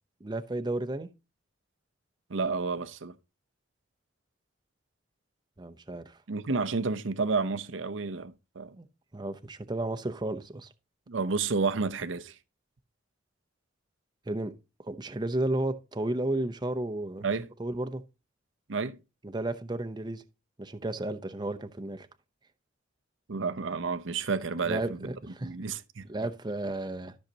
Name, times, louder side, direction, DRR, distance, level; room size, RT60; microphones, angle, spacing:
voice 1, 0.2-1.1 5.6-6.2 8.8-8.9 9.1-10.7 14.3-14.5 14.8-17.2 17.6-18.0 19.2-20.2 20.6-22.1 24.6-25.5 26.1-27.2, right 2 dB, 20° right, 0.7 m, -33 dB
voice 2, 2.3-3.1 6.3-8.8 11.1-12.4 17.2-17.5 18.7-19.0 23.3-25.1 25.4-26.1, right 4 dB, 75° right, 0.7 m, -30 dB
13.5 x 6.4 x 2.8 m
head